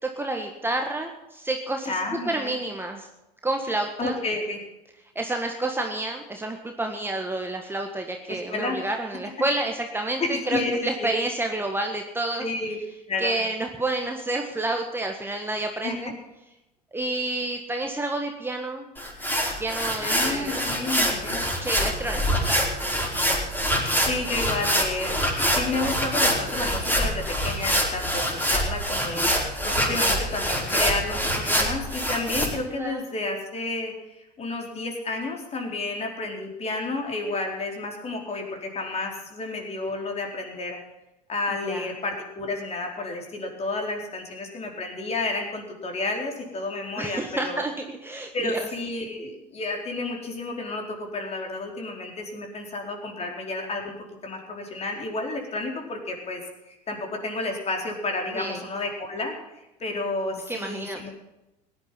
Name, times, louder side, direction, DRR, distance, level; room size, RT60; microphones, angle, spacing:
voice 1, 0.0-2.0 2.3-3.1 3.4-4.2 5.1-12.4 13.2-16.1 16.9-18.9 19.6-20.6 21.6-22.7 32.7-33.0 41.6-41.9 47.0-48.6 58.3-58.6 60.5-61.1, right 2 dB, 10° right, 3 dB, 1.7 m, -29 dB
voice 2, 1.9-2.6 4.0-4.6 8.3-8.8 10.2-10.7 11.0-11.1 12.4-12.8 13.1-13.4 15.8-16.1 20.0-21.4 24.0-40.8 41.3-47.6 48.3-53.9 54.2-59.3 59.8-61.1, left 2 dB, 30° left, 2 dB, 4.4 m, -31 dB
sound 1, 19.0-32.5, equal, 10° left, 5.1 m, -25 dB
17.0 x 11.0 x 5.9 m, 0.95 s
hypercardioid pair, 80°, 21 cm